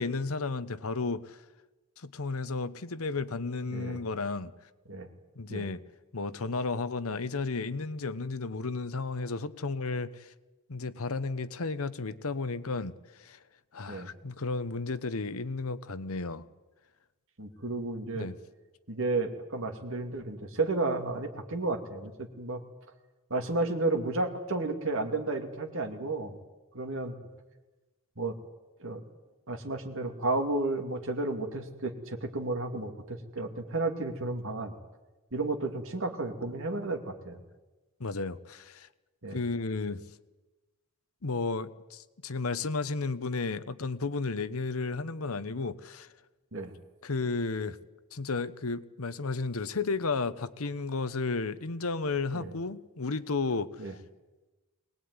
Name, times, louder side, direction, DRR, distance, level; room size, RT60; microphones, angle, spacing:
voice 1, 0.0-1.4 2.0-4.5 5.4-5.8 6.1-10.3 10.7-12.9 13.2-13.4 13.7-16.4 18.1-18.3 38.0-38.9 39.3-40.0 41.2-46.1 47.0-47.8 48.1-53.7, left 3 dB, 65° left, 14 dB, 1.0 m, -33 dB
voice 2, 3.7-4.0 4.9-5.1 5.5-5.7 13.9-14.1 17.4-18.3 18.9-22.6 23.3-26.3 26.7-27.1 28.2-28.3 28.8-29.0 29.5-34.8 35.3-37.4 39.2-39.4 46.5-46.7 52.3-52.5 53.8-53.9, right 2 dB, 60° right, 5 dB, 2.6 m, -32 dB
23.0 x 19.0 x 9.7 m, 1.2 s
head